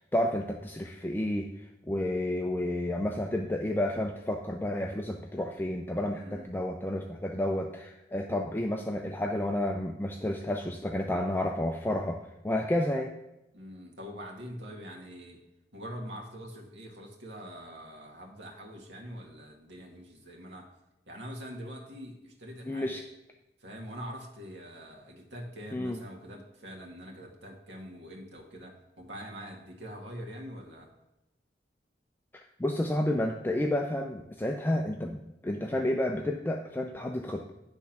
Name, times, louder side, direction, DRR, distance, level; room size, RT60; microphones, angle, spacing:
voice 1, 0.0-13.1 22.6-23.0 25.7-26.0 32.6-35.2 35.4-37.5, left 1 dB, 10° left, 3 dB, 0.4 m, -31 dB
voice 2, 6.1-6.5 13.5-15.4 15.7-20.7 21.1-23.0 23.6-30.9, equal, 80° right, 0 dB, 1.7 m, -44 dB
10.5 x 3.5 x 5.8 m, 0.94 s
head